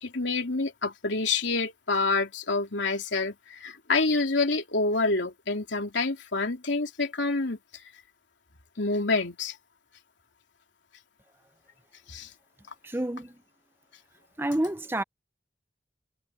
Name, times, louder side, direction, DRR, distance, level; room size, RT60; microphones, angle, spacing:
voice 1, 0.0-7.6 8.8-9.6 12.1-12.3, left 3 dB, 75° left, 2.9 m, -27 dB
voice 2, 12.8-13.4 14.4-15.0, right 1 dB, 10° right, 0.7 m, -29 dB
head